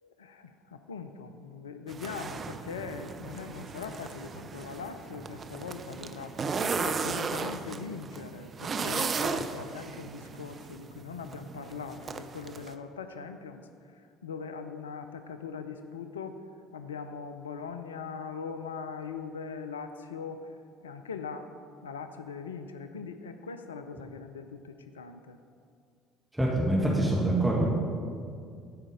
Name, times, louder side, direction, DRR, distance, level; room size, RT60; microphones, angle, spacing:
voice 1, 0.0-6.3 6.8-13.6 13.9-16.4 16.7-20.5 20.8-21.5 21.8-25.4, left 5 dB, 80° left, 8 dB, 0.4 m, -41 dB
sound 1, 1.9-12.7, right 5 dB, 40° right, 0.5 m, -36 dB
voice 2, 26.3-27.7, right 1 dB, 5° right, -4 dB, 1.9 m, -25 dB
12.0 x 5.0 x 5.1 m, 2.2 s
figure-of-eight pair, 55°, 0 cm